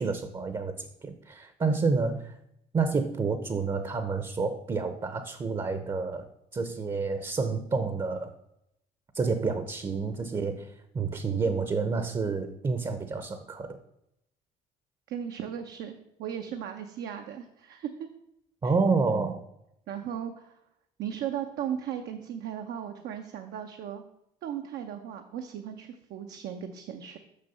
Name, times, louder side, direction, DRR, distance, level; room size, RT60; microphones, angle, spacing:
voice 1, 0.0-2.3 2.7-8.3 9.1-13.8 18.6-19.4, right 4 dB, 25° right, 10 dB, 0.7 m, -29 dB
voice 2, 15.1-18.1 18.6-18.7 19.9-20.5 21.0-24.0 24.4-27.2, right 9 dB, 75° right, 5 dB, 0.8 m, -36 dB
6.7 x 6.2 x 6.7 m, 0.81 s
cardioid pair, 110°, 17 cm